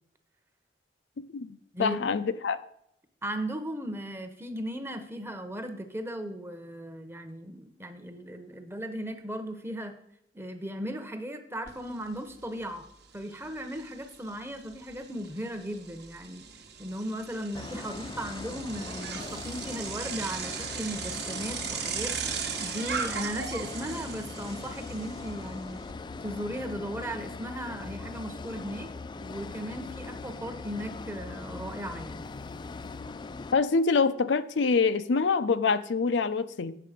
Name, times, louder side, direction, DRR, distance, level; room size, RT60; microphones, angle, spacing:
voice 1, 1.3-2.6 33.5-36.7, left 4 dB, 80° left, 12 dB, 0.5 m, -25 dB
voice 2, 3.2-10.0 10.3-12.8 13.1-16.4 16.8-22.1 22.6-25.8 26.2-28.9 29.2-32.3, equal, 15° right, 8 dB, 0.8 m, -37 dB
Bicycle, 11.7-11.8 12.1-25.9, right 7 dB, 65° right, 1.1 m, -38 dB
sound 1, 17.5-33.5, left 3 dB, 25° left, 0.3 m, -40 dB
8.8 x 6.6 x 5.0 m, 0.72 s
head